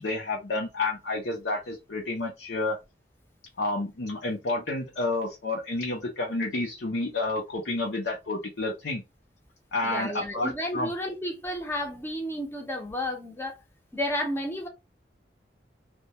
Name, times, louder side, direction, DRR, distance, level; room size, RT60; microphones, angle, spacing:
voice 1, 0.0-2.8 3.6-9.0 9.7-10.9, left 2 dB, 75° left, 0.6 m, -30 dB
voice 2, 9.8-13.6 13.9-14.7, left 1 dB, 15° left, 0.6 m, -32 dB
2.2 x 2.1 x 2.8 m
head